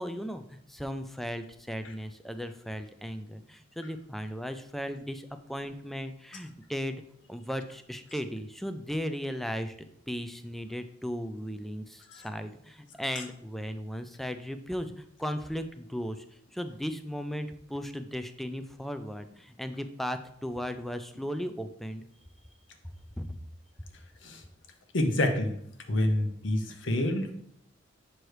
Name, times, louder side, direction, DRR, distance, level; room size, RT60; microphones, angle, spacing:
voice 1, 0.0-7.0 7.3-9.7 10.1-16.2 16.5-22.1 23.2-23.3, equal, ahead, 8 dB, 0.4 m, -36 dB
voice 2, 24.9-25.5 25.9-27.3, left 1 dB, 70° left, 5 dB, 0.9 m, -27 dB
6.4 x 3.1 x 4.8 m, 0.71 s
head